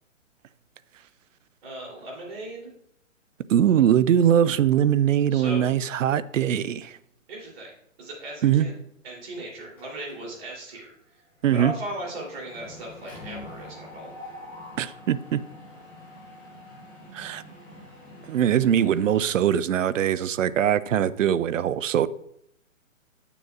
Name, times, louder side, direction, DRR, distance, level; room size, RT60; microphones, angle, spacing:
voice 1, 1.6-2.7 5.3-5.6 7.3-7.7 8.0-8.7 9.0-10.9 11.5-14.1, right 1 dB, 45° right, 3.2 m, -37 dB
voice 2, 3.5-6.9 8.4-8.7 11.4-11.7 14.8-15.4 17.1-17.4 18.3-22.1, right 10 dB, 70° right, 0.5 m, -22 dB
Mechanisms, 9.8-10.4 10.7-10.9 11.2-19.3, left 1 dB, 5° left, 0.4 m, -45 dB
9.0 x 6.9 x 2.4 m
hypercardioid pair, 135°, 40 cm